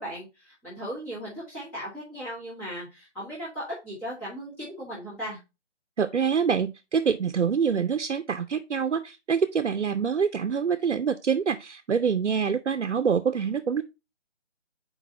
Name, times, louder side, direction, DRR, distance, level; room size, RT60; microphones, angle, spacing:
voice 1, 0.0-5.4, equal, 5° left, 1.3 m, -37 dB
voice 2, 6.0-13.8, right 6 dB, 80° right, 0.7 m, -25 dB
4.7 x 3.9 x 5.4 m
figure-of-eight pair, 160°, 35 cm